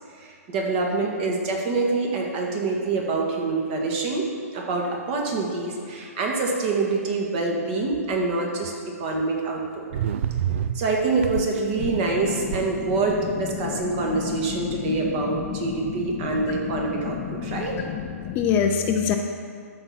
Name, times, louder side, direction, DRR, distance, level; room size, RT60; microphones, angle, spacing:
voice 1, 0.2-4.3 4.5-8.7 9.0-9.9 10.7-17.8, right 3 dB, 35° right, 0 dB, 1.8 m, -26 dB
sound 1, 8.6-8.7 9.9-13.5, right 9 dB, 50° right, 0.4 m, -29 dB
voice 2, 13.6-19.2, left 8 dB, 25° left, 4 dB, 0.5 m, -28 dB
12.5 x 4.5 x 5.8 m, 2.3 s
hypercardioid pair, 135°, 8 cm